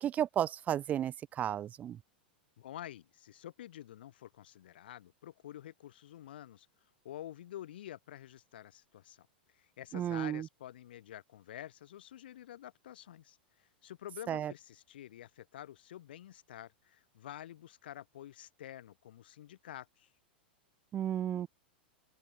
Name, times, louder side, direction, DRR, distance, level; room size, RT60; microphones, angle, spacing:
voice 1, 0.0-2.0 9.9-10.5 14.3-14.5 20.9-21.5, right 10 dB, 30° right, 0.4 m, -33 dB
voice 2, 2.6-6.7 7.0-9.3 9.5-20.1, left 12 dB, 70° left, 2.5 m, -49 dB
open air
hypercardioid pair, 105°, 6 cm